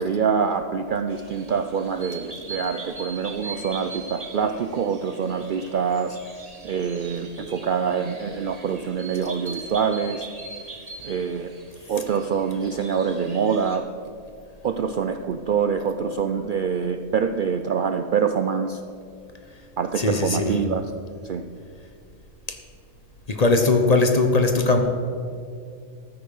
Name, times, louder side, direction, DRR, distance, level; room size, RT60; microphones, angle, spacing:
voice 1, 0.0-6.2 6.6-10.3 11.0-11.5 11.9-13.9 14.6-18.8 19.8-20.9 21.2-21.4, right 6 dB, 85° right, 8 dB, 0.4 m, -25 dB
sound 1, 1.1-13.8, right 3 dB, 30° right, 1.3 m, -41 dB
voice 2, 20.0-20.5 23.3-24.8, left 3 dB, 35° left, 5 dB, 0.9 m, -19 dB
14.0 x 8.8 x 5.4 m, 2.3 s
omnidirectional pair, 1.5 m